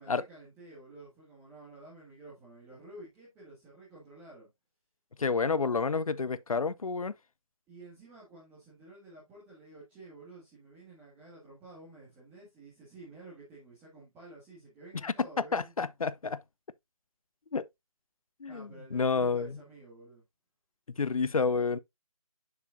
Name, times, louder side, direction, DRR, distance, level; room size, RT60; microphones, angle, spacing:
voice 1, 0.0-4.5 7.7-15.9 18.5-20.2, right 2 dB, 10° right, 1.8 m, -51 dB
voice 2, 5.2-7.1 15.0-15.3 15.5-16.4 17.5-17.7 18.4-19.6 21.0-21.8, left 4 dB, 75° left, 0.6 m, -29 dB
6.8 x 6.6 x 2.5 m
figure-of-eight pair, 155°, 18 cm